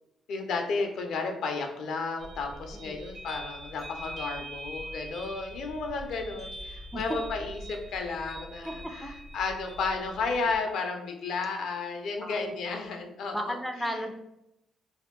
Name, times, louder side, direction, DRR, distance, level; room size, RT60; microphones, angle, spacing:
voice 1, 0.3-13.5 13.9-14.0, left 4 dB, 75° left, 4 dB, 0.5 m, -33 dB
sound 1, 2.2-10.6, right 1 dB, 70° right, 1.0 m, -43 dB
voice 2, 13.3-14.1, equal, ahead, 5 dB, 0.3 m, -34 dB
2.7 x 2.1 x 3.5 m, 0.86 s
cardioid pair, 90°, 0 cm